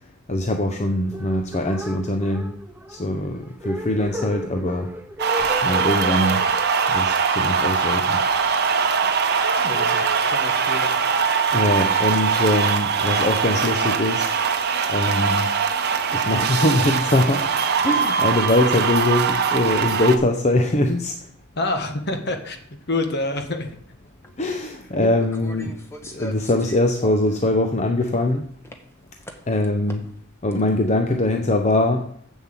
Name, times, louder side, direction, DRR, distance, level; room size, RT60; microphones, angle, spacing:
voice 1, 0.3-2.6 2.9-4.9 5.6-6.5 6.9-8.2 11.5-14.3 14.9-15.5 16.1-17.5 17.8-21.2 24.4-25.7 26.1-28.5 29.5-30.1 30.4-32.1, left 1 dB, 30° left, 5 dB, 0.7 m, -22 dB
sound 1, 1.0-8.2, right 1 dB, 10° right, 0.5 m, -35 dB
sound 2, 5.2-20.2, right 6 dB, 50° right, 0.8 m, -21 dB
voice 2, 9.6-11.0 21.6-22.6 22.9-23.7, left 2 dB, 50° left, 6 dB, 1.4 m, -27 dB
sound 3, 24.2-24.3 25.1-27.4 27.7-28.3 28.6-28.8 29.2-30.2 30.5-30.6, equal, 10° left, 1.1 m, -40 dB
7.3 x 7.3 x 7.5 m, 0.62 s
head